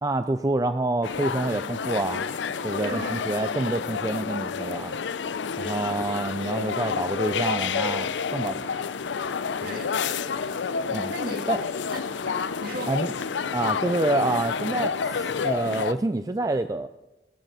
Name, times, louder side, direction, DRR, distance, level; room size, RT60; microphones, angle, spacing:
voice 1, 0.0-2.3 2.6-5.0 5.6-8.8 10.9-11.1 11.5-11.6 12.9-13.1 13.5-16.9, right 2 dB, 20° right, 10 dB, 0.4 m, -27 dB
sound 1, 1.0-15.9, left 6 dB, 90° left, 0.5 m, -29 dB
voice 2, 2.8-3.3 5.6-5.8 9.6-9.9 11.1-11.5 11.9-12.9 13.2-13.3, right 2 dB, 55° right, 3 dB, 2.2 m, -37 dB
20.0 x 7.9 x 6.0 m, 1.0 s
head